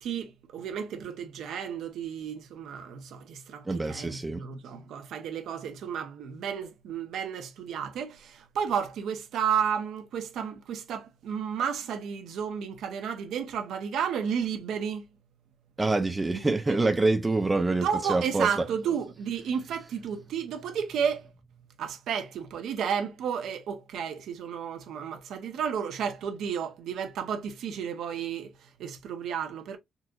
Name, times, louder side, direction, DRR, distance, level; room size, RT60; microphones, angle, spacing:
voice 1, 0.0-15.0 16.3-16.4 16.7-16.9 17.8-21.3 21.8-29.8, right 7 dB, 75° right, 0.7 m, -32 dB
voice 2, 3.6-4.4 15.8-18.5, right 2 dB, 20° right, 0.4 m, -26 dB
3.9 x 2.8 x 2.4 m
cardioid pair, 90°, 0 cm